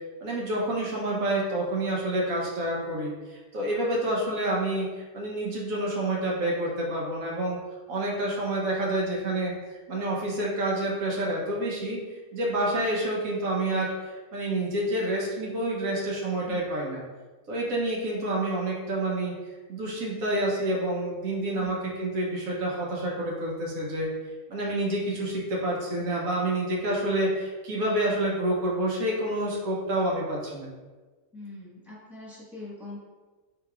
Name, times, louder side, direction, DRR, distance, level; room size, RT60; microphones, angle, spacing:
voice 1, 0.2-7.6 7.9-9.5 9.9-12.0 12.3-17.0 17.5-19.3 19.7-24.1 24.5-30.7, right 1 dB, 70° right, -4 dB, 1.3 m, -28 dB
voice 2, 31.3-33.0, left 2 dB, ahead, -7 dB, 1.2 m, -42 dB
4.7 x 4.0 x 2.4 m, 1.3 s
omnidirectional pair, 1.6 m